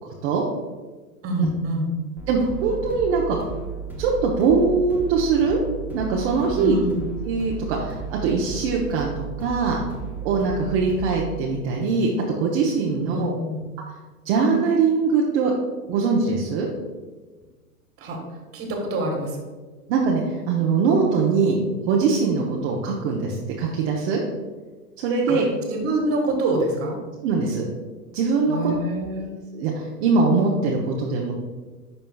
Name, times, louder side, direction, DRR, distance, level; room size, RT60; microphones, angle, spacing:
voice 1, 0.0-0.4 2.3-3.4 4.0-5.6 5.9-6.8 7.2-9.8 10.2-13.3 14.2-15.5 15.9-16.7 19.9-21.6 21.8-24.2 25.0-25.4 27.2-27.7 28.1-28.7 29.5-31.3, right 4 dB, 45° right, -2 dB, 1.0 m, -22 dB
voice 2, 1.2-1.9 6.5-7.0 12.9-13.6 18.0-19.4 25.3-27.0 28.5-29.3, right 1 dB, 30° right, 1 dB, 1.5 m, -26 dB
sound 1, 2.2-11.4, right 6 dB, 5° right, 1.0 m, -34 dB
11.0 x 4.3 x 2.3 m, 1.3 s
hypercardioid pair, 110°, 46 cm